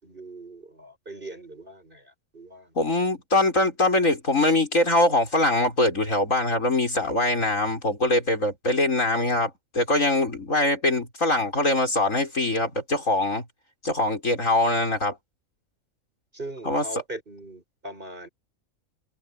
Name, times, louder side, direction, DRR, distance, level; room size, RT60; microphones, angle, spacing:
voice 1, 0.0-2.7 16.3-18.3, right 1 dB, 40° right, 6.1 m, -40 dB
voice 2, 2.7-13.4 13.8-15.2 16.6-16.8, left 2 dB, 65° left, 6.7 m, -23 dB
omnidirectional pair, 1.5 m